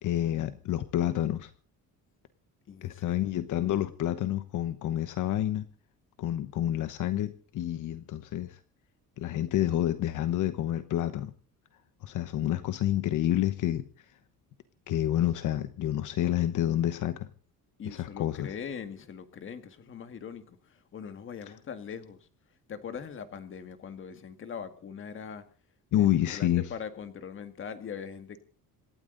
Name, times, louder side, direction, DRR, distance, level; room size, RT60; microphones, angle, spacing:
voice 1, 0.0-1.5 2.8-5.7 6.2-8.6 9.2-11.3 12.0-13.9 14.9-17.3 17.9-18.5 25.9-26.7, left 12 dB, 65° left, 1.1 m, -28 dB
voice 2, 2.7-3.5 17.8-22.3 22.7-25.4 25.9-28.4, left 7 dB, 40° left, 1.8 m, -41 dB
27.0 x 12.5 x 4.0 m
cardioid pair, 170°, 33 cm